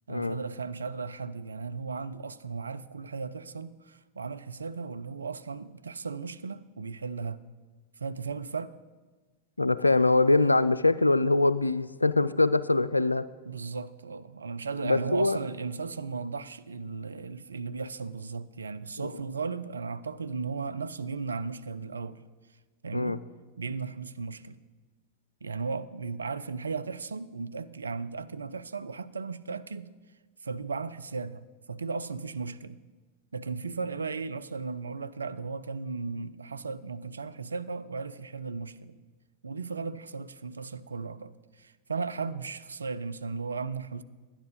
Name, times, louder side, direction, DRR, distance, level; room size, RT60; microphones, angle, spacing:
voice 1, 0.1-7.4 8.0-8.7 13.5-22.2 22.8-23.2 23.6-24.6 25.4-29.9 30.4-32.8 33.3-39.0 39.4-44.0, right 4 dB, 75° right, 0.4 m, -36 dB
voice 2, 9.6-13.3 14.8-15.4 19.0-19.1 22.9-23.2, left 2 dB, 85° left, 0.3 m, -23 dB
10.5 x 10.0 x 5.2 m
figure-of-eight pair, 90°, 0 cm